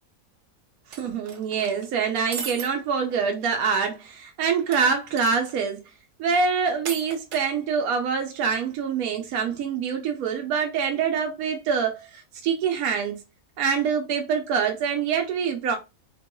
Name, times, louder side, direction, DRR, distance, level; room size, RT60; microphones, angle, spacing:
sound 1, 0.9-1.8 2.3-2.7 3.1-3.2 3.4-3.5 4.7-5.6 6.8-7.4, right 6 dB, 65° right, 0.9 m, -36 dB
voice 1, 0.9-5.8 6.2-13.2 13.6-15.8, right 6 dB, 90° right, 1.1 m, -25 dB
3.6 x 2.2 x 2.9 m
omnidirectional pair, 1.5 m